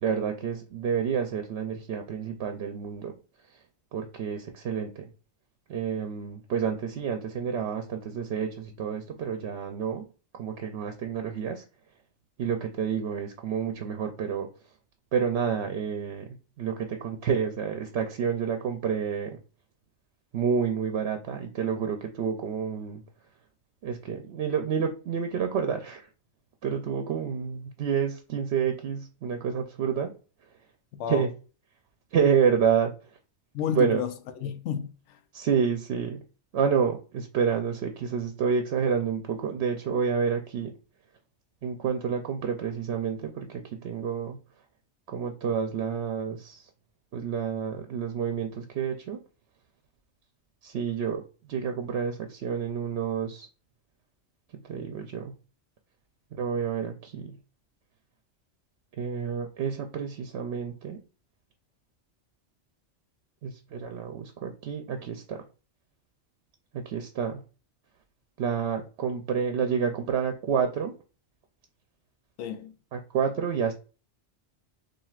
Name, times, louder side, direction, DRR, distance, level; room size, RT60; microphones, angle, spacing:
voice 1, 0.0-3.1 3.9-5.1 5.7-10.0 10.3-11.6 12.4-14.5 15.1-19.4 20.3-23.0 23.8-26.1 26.6-30.1 31.1-31.3 32.1-32.9 33.7-34.0 35.3-36.2 36.5-40.7 41.6-44.4 45.1-46.7 47.1-49.2 50.6-53.5 54.6-55.3 56.3-57.4 59.0-61.0 63.4-65.4 66.7-67.4 68.4-70.9 72.9-73.7, right 7 dB, 70° right, 0.8 m, -29 dB
voice 2, 30.9-31.2 33.5-35.2 72.4-72.7, left 8 dB, 80° left, 1.0 m, -32 dB
7.2 x 2.7 x 2.4 m
omnidirectional pair, 1.2 m